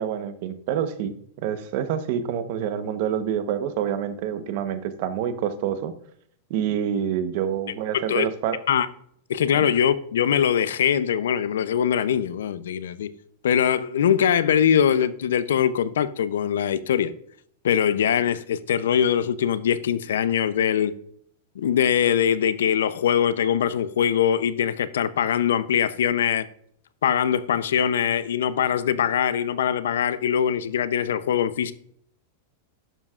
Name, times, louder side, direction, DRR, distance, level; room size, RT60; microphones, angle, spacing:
voice 1, 0.0-5.9 6.5-8.6 9.5-9.7, right 9 dB, 50° right, 0.9 m, -27 dB
voice 2, 9.3-13.1 13.4-17.1 17.6-20.9 21.6-26.4 27.0-31.7, left 8 dB, 90° left, 0.5 m, -22 dB
11.0 x 7.1 x 2.4 m
supercardioid pair, 155°, 0 cm